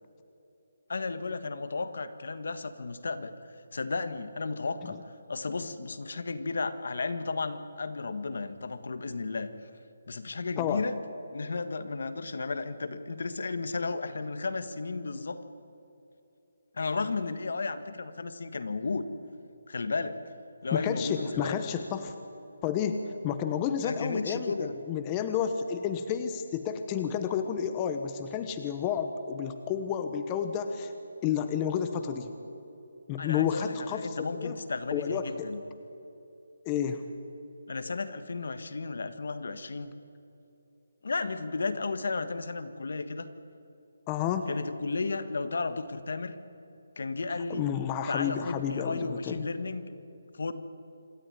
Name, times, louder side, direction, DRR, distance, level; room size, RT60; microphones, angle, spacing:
voice 1, 0.9-3.3 3.7-5.0 5.3-9.5 10.1-11.0 11.3-15.4 16.7-19.1 19.7-20.2 20.6-21.6 23.8-24.7 33.2-35.6 37.7-39.9 41.0-43.3 44.5-46.3 47.0-47.7 48.1-49.9 50.3-50.5, left 3 dB, 65° left, 11 dB, 1.5 m, -33 dB
voice 2, 20.7-22.1 22.6-30.9 31.2-32.3 33.1-34.6 34.9-35.6 36.6-37.0 44.1-44.5 47.5-49.5, left 8 dB, 15° left, 8 dB, 0.9 m, -31 dB
26.5 x 13.5 x 9.9 m, 2.9 s
hypercardioid pair, 170°, 0 cm